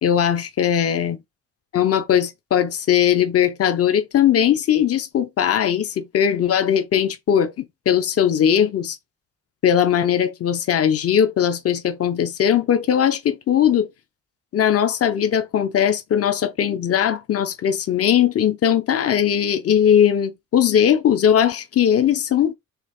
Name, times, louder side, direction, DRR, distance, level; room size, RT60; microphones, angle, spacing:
voice 1, 0.0-1.2 1.7-9.0 9.6-13.9 14.5-22.5, left 9 dB, 50° left, 1.2 m, -19 dB
6.6 x 3.7 x 5.0 m
wide cardioid pair, 175°, 30 cm